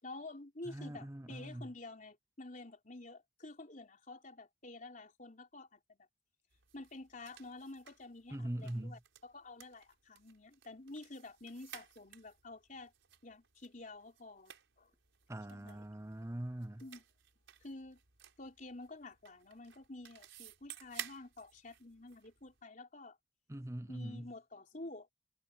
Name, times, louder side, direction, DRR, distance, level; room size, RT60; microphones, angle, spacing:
voice 1, 0.0-6.1 6.7-12.9 13.2-14.9 15.5-15.8 16.8-17.0 17.6-18.0 18.4-23.2 23.9-25.1, left 2 dB, 40° left, 4.0 m, -50 dB
voice 2, 0.7-1.7 8.3-9.0 15.3-16.8 23.5-24.3, right 1 dB, 15° right, 0.6 m, -42 dB
sound 1, 6.5-22.6, right 10 dB, 80° right, 4.8 m, -55 dB
head